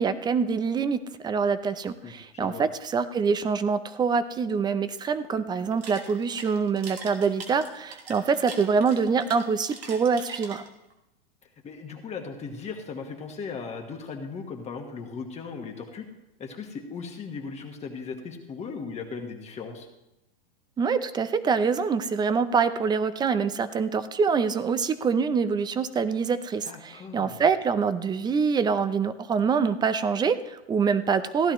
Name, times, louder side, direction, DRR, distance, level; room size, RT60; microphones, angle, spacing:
voice 1, 0.0-10.6 20.8-31.5, right 5 dB, 15° right, 13 dB, 0.5 m, -25 dB
voice 2, 2.0-2.6 11.4-16.1 16.4-19.9 26.6-27.4, left 5 dB, 20° left, 3 dB, 1.4 m, -38 dB
sound 1, 5.6-10.9, right 4 dB, 80° right, 2.2 m, -42 dB
15.5 x 11.5 x 3.0 m, 0.92 s
hypercardioid pair, 115°, 30 cm